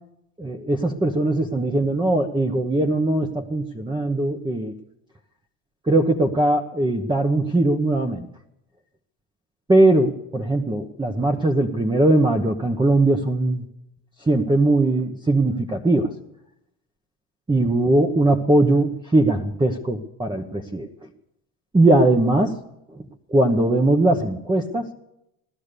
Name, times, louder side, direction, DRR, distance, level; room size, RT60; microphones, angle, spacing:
voice 1, 0.4-4.7 5.9-8.3 9.7-13.6 14.3-16.1 17.5-20.9 21.7-22.5 23.3-24.9, right 2 dB, 10° right, 4 dB, 1.0 m, -20 dB
17.0 x 12.0 x 6.8 m, 0.87 s
supercardioid pair, 90°, 43 cm